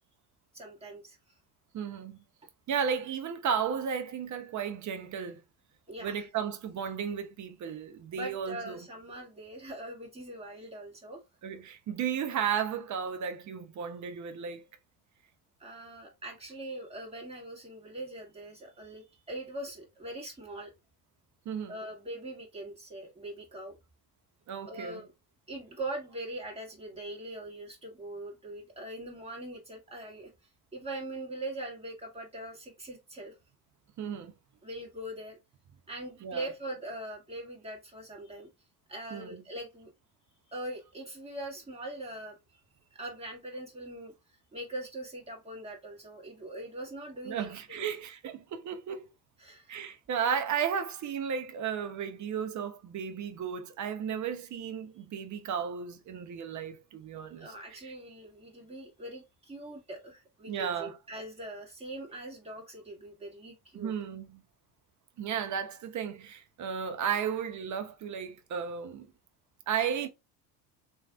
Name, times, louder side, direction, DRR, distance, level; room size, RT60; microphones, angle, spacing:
voice 1, 0.5-1.2 5.9-6.3 8.1-11.2 15.6-20.7 21.7-23.7 24.7-25.1 25.5-30.3 30.7-33.3 34.6-35.4 35.9-38.5 38.9-39.9 40.5-42.4 42.9-47.9 49.4-49.8 57.4-63.9, right 1 dB, 15° right, 2.1 m, -42 dB
voice 2, 1.7-2.2 2.7-5.4 6.0-8.9 11.4-14.7 21.4-21.8 24.5-25.0 34.0-34.3 36.2-36.5 39.1-39.4 47.2-49.1 49.7-57.9 60.4-61.0 63.7-64.4 65.2-69.1 69.7-70.1, right 7 dB, 40° right, 0.9 m, -34 dB
3.3 x 3.2 x 2.4 m
hypercardioid pair, 75°, 45 cm